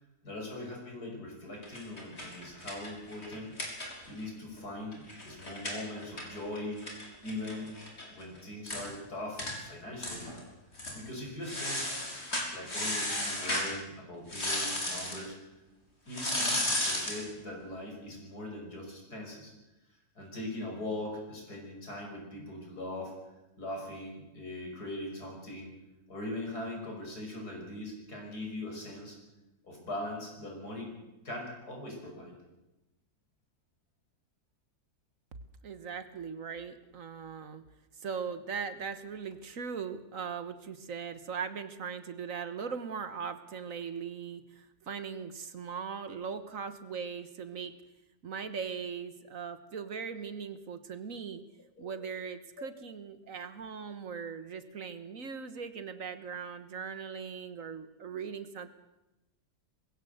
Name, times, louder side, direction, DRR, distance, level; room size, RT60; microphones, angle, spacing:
voice 1, 0.2-3.6 4.0-6.9 7.2-7.7 8.1-10.3 10.9-11.9 12.5-15.4 16.1-19.5 20.2-23.1 23.6-25.7 26.1-29.2 29.6-31.0 31.2-32.4 51.8-51.9, left 1 dB, 80° left, 0 dB, 6.4 m, -41 dB
sound 1, 1.6-4.3 4.6-4.7 4.9-8.1 8.4-8.5 8.7-8.9 9.4-9.6 10.0-10.4 10.7-11.0 11.4-13.7 14.3-15.2 16.1-17.3, left 1 dB, 40° left, 4.6 m, -34 dB
voice 2, 35.6-37.6 38.0-47.8 48.2-51.4 51.8-58.7, right 6 dB, 60° right, 11 dB, 1.6 m, -39 dB
20.5 x 16.5 x 8.0 m, 0.99 s
omnidirectional pair, 1.7 m